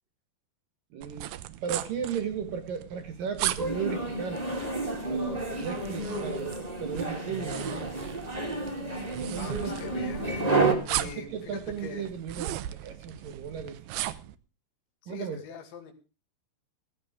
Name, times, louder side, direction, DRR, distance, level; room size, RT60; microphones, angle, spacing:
voice 1, 0.9-1.3 1.6-4.4 5.1-7.6 9.0-9.9 11.0-13.8 15.1-15.4, right 7 dB, 60° right, 8 dB, 2.7 m, -36 dB
sound 1, 1.0-14.3, right 14 dB, 75° right, 2.6 m, -38 dB
sound 2, 3.6-10.7, right 2 dB, 15° right, 1.8 m, -30 dB
voice 2, 9.4-10.5 10.8-12.1 15.0-15.9, left 7 dB, 80° left, 5 dB, 4.6 m, -42 dB
16.0 x 14.0 x 3.6 m, 0.31 s
omnidirectional pair, 5.2 m